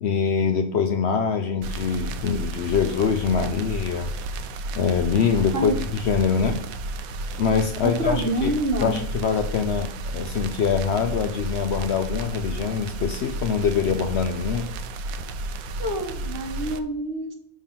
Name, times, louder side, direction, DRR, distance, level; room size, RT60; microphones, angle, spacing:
voice 1, 0.0-4.1 4.7-6.6 7.4-8.5 8.8-14.7, left 6 dB, 60° left, 6 dB, 0.7 m, -24 dB
sound 1, 1.6-16.8, right 2 dB, 80° right, 1.0 m, -32 dB
voice 2, 7.8-9.0 15.8-17.4, right 1 dB, 45° right, 3 dB, 1.2 m, -27 dB
5.9 x 3.6 x 5.7 m, 0.65 s
omnidirectional pair, 1.5 m